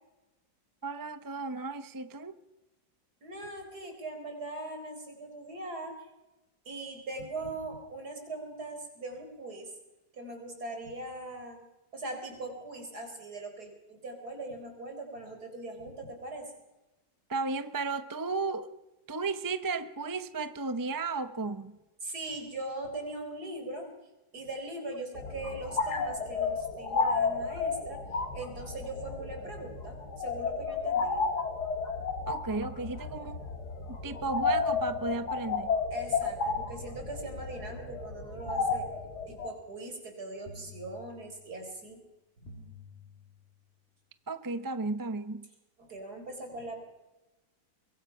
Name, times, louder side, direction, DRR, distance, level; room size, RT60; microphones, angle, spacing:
voice 1, 0.8-2.4 17.3-18.7 19.1-21.8 32.3-33.4 33.9-35.8 44.3-45.5, right 3 dB, 20° right, 11 dB, 0.6 m, -34 dB
voice 2, 3.2-6.1 6.6-9.7 10.1-11.6 11.9-16.5 22.0-23.9 24.3-28.0 28.3-31.3 35.9-38.9 39.3-42.0 45.8-46.8, right 2 dB, 60° right, 5 dB, 4.8 m, -40 dB
Space Whistle, 25.2-39.5, left 4 dB, 65° left, 2.9 m, -32 dB
sound 1, 34.5-35.6 36.5-37.6 38.5-39.6 40.5-41.6 42.5-43.6, left 3 dB, 35° left, 6.0 m, -51 dB
23.5 x 22.0 x 5.8 m, 1.0 s
omnidirectional pair, 1.9 m